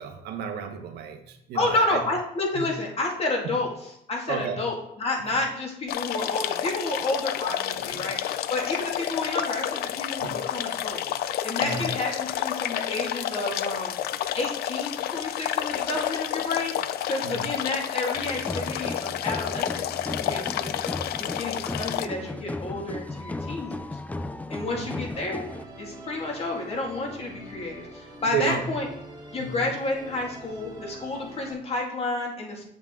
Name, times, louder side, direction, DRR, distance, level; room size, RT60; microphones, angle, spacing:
voice 1, 0.0-2.0 2.5-2.7 3.4-3.6 4.3-4.6 5.3-5.4 7.9-8.0 10.2-10.4 11.6-11.9 17.2-17.5 24.6-25.0 28.3-28.7 29.4-29.5, right 6 dB, 75° right, 5 dB, 1.1 m, -32 dB
voice 2, 1.5-3.7 4.1-11.2 11.4-14.0 14.3-20.9 21.2-24.0 24.5-25.4 25.8-28.9 29.3-32.6, left 2 dB, 35° left, 0 dB, 2.2 m, -30 dB
sound 1, 5.9-22.1, left 11 dB, 65° left, 0.5 m, -30 dB
sound 2, 18.1-25.6, left 2 dB, 10° left, 0.4 m, -35 dB
Musical instrument, 25.1-31.5, right 1 dB, 25° right, 1.8 m, -44 dB
7.4 x 7.1 x 3.7 m, 0.76 s
cardioid pair, 110°, 17 cm